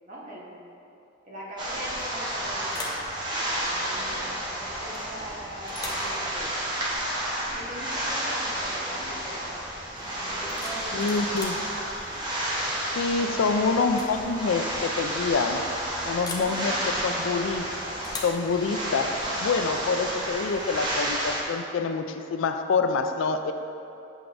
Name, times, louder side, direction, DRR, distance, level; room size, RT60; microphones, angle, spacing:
voice 1, 0.1-0.6 1.2-3.0 3.7-6.5 7.5-9.6 10.0-11.0 13.2-13.5 16.3-17.4, right 1 dB, 40° right, -5 dB, 1.1 m, -41 dB
sound 1, 1.6-21.4, right 1 dB, 20° right, 0.8 m, -31 dB
sound 2, 2.0-2.3 2.7-3.1 4.9-5.3 5.7-6.1 7.9-8.1 8.5-8.8 10.3-11.7 13.1-13.4 13.8-14.2 14.4-14.5 16.2-16.6 18.0-18.4, left 3 dB, 20° left, 0.5 m, -40 dB
sound 3, 9.9-21.0, right 2 dB, 55° right, 0.6 m, -47 dB
voice 2, 10.9-11.7 13.0-15.6 16.0-16.8 17.0-17.6 18.2-23.5, left 4 dB, 80° left, 7 dB, 0.4 m, -26 dB
8.0 x 5.8 x 2.5 m, 2.7 s
head